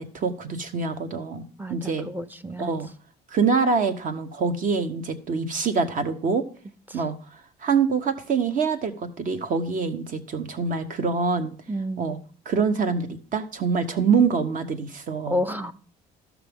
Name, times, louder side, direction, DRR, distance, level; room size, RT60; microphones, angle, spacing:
voice 1, 0.0-1.4 1.7-2.1 2.6-2.9 3.3-6.4 6.9-7.1 7.6-11.5 12.0-12.2 12.5-15.4, right 5 dB, 50° right, 1.1 m, -25 dB
voice 2, 1.6-2.7 6.9-7.0 11.7-12.2 15.3-15.7, left 1 dB, 10° right, 0.6 m, -30 dB
13.5 x 6.0 x 3.6 m
cardioid pair, 110°, 17 cm